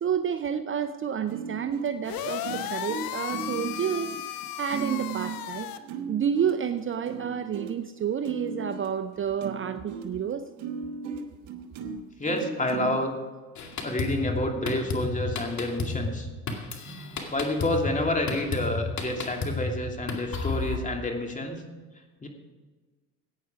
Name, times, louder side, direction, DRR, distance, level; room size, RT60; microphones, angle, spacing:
voice 1, 0.0-4.2 4.6-5.7 6.1-10.4, right 8 dB, 35° right, 10 dB, 0.7 m, -30 dB
sound 1, 1.3-13.1 13.7-13.8 14.3-14.5, right 5 dB, 90° right, 1.2 m, -37 dB
sound 2, 2.0-5.8, left 11 dB, 65° left, 1.0 m, -35 dB
voice 2, 12.2-13.2 13.8-16.3 17.3-21.6 22.2-22.3, left 1 dB, 20° left, 2 dB, 2.8 m, -29 dB
Drum kit, 13.5-20.8, left 3 dB, 50° left, 2.3 m, -32 dB
15.5 x 9.2 x 4.8 m, 1.3 s
supercardioid pair, 75°, 37 cm